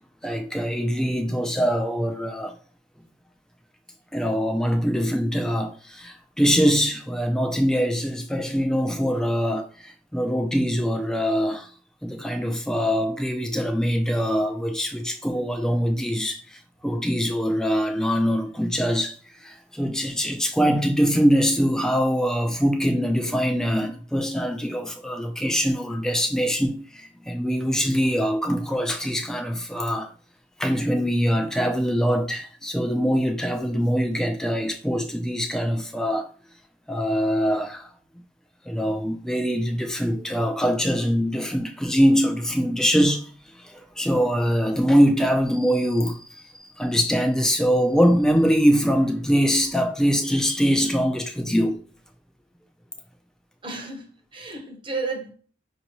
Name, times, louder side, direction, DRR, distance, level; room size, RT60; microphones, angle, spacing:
voice 1, 0.2-2.5 4.1-11.7 12.0-30.1 30.6-36.3 36.9-37.9 38.7-43.3 43.6-51.8, equal, 5° left, 0.4 m, -23 dB
voice 2, 53.6-55.3, right 3 dB, 25° right, 0.8 m, -32 dB
5.6 x 2.7 x 2.9 m
head